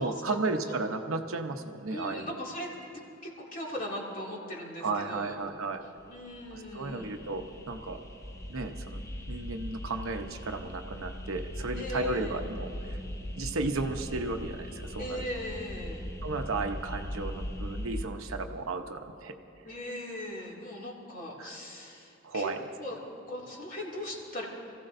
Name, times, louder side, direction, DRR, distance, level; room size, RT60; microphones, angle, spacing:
voice 1, 0.0-2.3 4.8-5.8 6.5-8.0 8.5-9.0 9.3-13.0 13.4-15.2 16.2-19.3 21.4-21.6 22.2-22.7, right 3 dB, 90° right, 5 dB, 0.9 m, -34 dB
voice 2, 1.9-2.7 3.2-5.3 6.1-7.1 11.7-12.4 15.0-16.0 19.6-22.5 22.8-23.0 23.3-24.4, left 1 dB, 40° left, -3 dB, 2.5 m, -39 dB
sound 1, 6.0-18.1, equal, 15° left, 0.6 m, -40 dB
26.5 x 15.5 x 2.6 m, 2.6 s
head